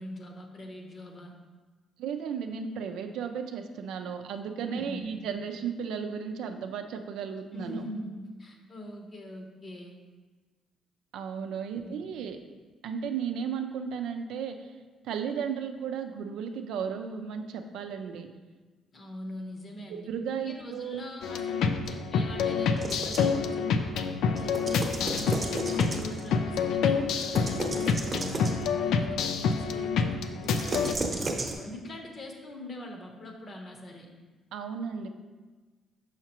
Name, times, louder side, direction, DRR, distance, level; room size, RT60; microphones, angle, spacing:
voice 1, 0.0-1.3 4.7-5.1 7.5-9.9 11.7-11.9 18.9-20.1 20.5-24.0 24.2-34.1, left 1 dB, 40° left, 2 dB, 0.9 m, -43 dB
voice 2, 2.0-7.8 11.1-12.4 12.8-14.7 15.0-18.3 19.9-21.1 34.5-35.1, right 7 dB, 85° right, 6 dB, 0.4 m, -34 dB
sound 1, 21.2-30.9, left 5 dB, 80° left, 0.4 m, -28 dB
sound 2, 22.8-23.4 24.4-26.3 27.2-28.7 30.4-31.5, right 2 dB, 30° right, 0.9 m, -34 dB
5.8 x 5.7 x 2.9 m, 1.3 s
cardioid pair, 90°, 0 cm